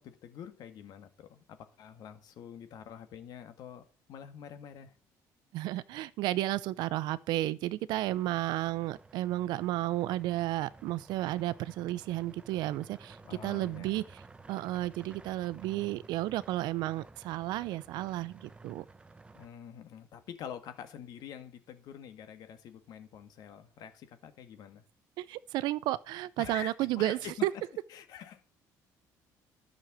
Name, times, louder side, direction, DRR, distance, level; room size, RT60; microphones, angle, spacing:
voice 1, 0.0-4.9 13.2-14.1 19.3-24.9 26.4-27.6 27.9-28.5, left 8 dB, 65° left, 1.8 m, -46 dB
voice 2, 5.5-13.2 13.4-14.2 14.5-18.8 25.2-27.5, right 15 dB, 80° right, 0.7 m, -32 dB
sound 1, 8.0-19.5, right 3 dB, 15° right, 0.8 m, -54 dB
11.5 x 6.4 x 7.5 m
cardioid pair, 120°, 7 cm